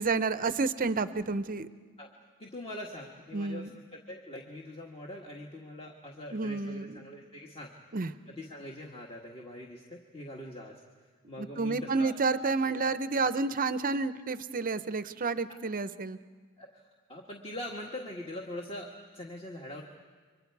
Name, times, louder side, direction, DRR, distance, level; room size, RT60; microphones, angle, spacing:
voice 1, 0.0-1.7 3.3-3.7 6.3-7.0 7.9-8.1 11.4-16.2, right 4 dB, 40° right, 13 dB, 0.7 m, -30 dB
voice 2, 2.4-7.7 8.3-10.8 11.3-12.1 16.6-16.8 17.1-19.8, left 1 dB, 25° left, -1 dB, 1.5 m, -43 dB
30.0 x 24.0 x 4.7 m, 1.5 s
head